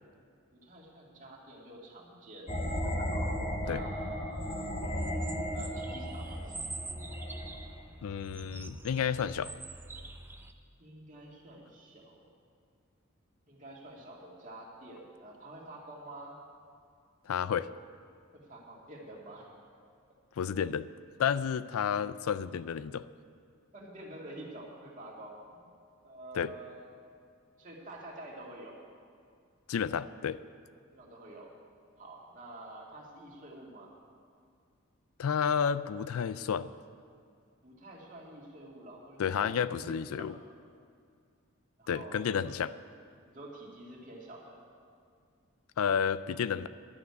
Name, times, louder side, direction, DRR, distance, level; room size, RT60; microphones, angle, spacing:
voice 1, 0.5-2.5 3.6-4.7 5.5-6.6 10.8-12.3 13.5-16.4 18.3-19.5 23.7-25.7 26.0-26.9 27.6-28.8 30.9-31.5 32.0-33.9 37.6-40.3 41.8-42.4 43.3-44.6, right 1 dB, 35° right, -3 dB, 2.2 m, -48 dB
sound 1, 2.5-7.9, equal, 30° left, 1.1 m, -35 dB
sound 2, 4.8-10.5, right 2 dB, 10° right, 0.5 m, -45 dB
voice 2, 8.0-9.5 17.3-17.7 20.4-20.9 21.2-23.1 26.3-26.5 29.7-30.4 35.2-36.7 39.2-40.3 41.9-42.7 45.8-46.7, left 7 dB, 85° left, 16 dB, 0.4 m, -31 dB
11.5 x 6.7 x 9.6 m, 2.2 s
head